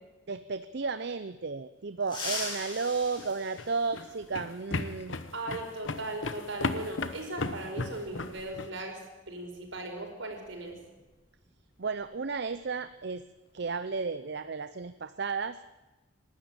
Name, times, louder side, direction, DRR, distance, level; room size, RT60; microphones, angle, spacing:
voice 1, 0.3-5.2 11.8-13.2 13.5-15.6, right 4 dB, 55° right, 12 dB, 0.6 m, -33 dB
sound 1, 2.0-4.4 6.1-6.2 7.4-7.5 9.1-9.3 9.6-9.9 10.3-12.5 12.8-13.0 13.5-13.9, left 2 dB, 25° left, 7.6 m, -41 dB
sound 2, 3.0-8.7, left 3 dB, 75° left, 1.1 m, -35 dB
voice 2, 5.3-9.0 9.3-10.8, right 2 dB, 75° right, 3 dB, 5.2 m, -38 dB
28.0 x 12.5 x 8.9 m, 1.1 s
head